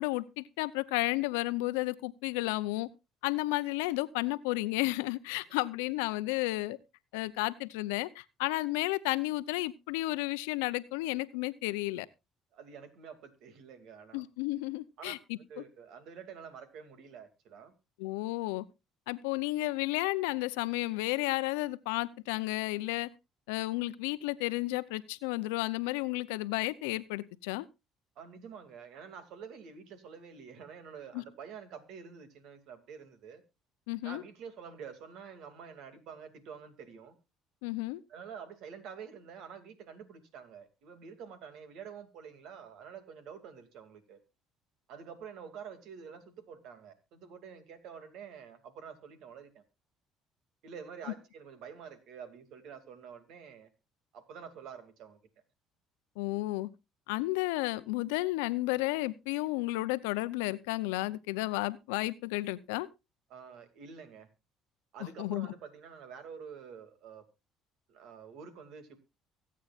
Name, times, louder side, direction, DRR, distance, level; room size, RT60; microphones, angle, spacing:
voice 1, 0.0-2.9 3.2-6.8 7.1-12.1 14.1-15.6 18.0-18.6 19.1-23.1 23.5-27.7 31.1-31.2 33.9-34.2 37.6-38.0 56.2-56.7 57.1-62.9 65.2-65.5, left 20 dB, 90° left, 16 dB, 0.7 m, -32 dB
voice 2, 12.5-14.2 15.0-17.7 28.2-33.4 34.0-37.1 38.1-44.2 44.9-49.6 50.6-53.7 54.1-55.2 63.3-64.3 64.9-67.2 67.9-69.0, right 7 dB, 70° right, 9 dB, 2.5 m, -48 dB
24.0 x 8.6 x 2.5 m, 0.25 s
supercardioid pair, 80°, 0 cm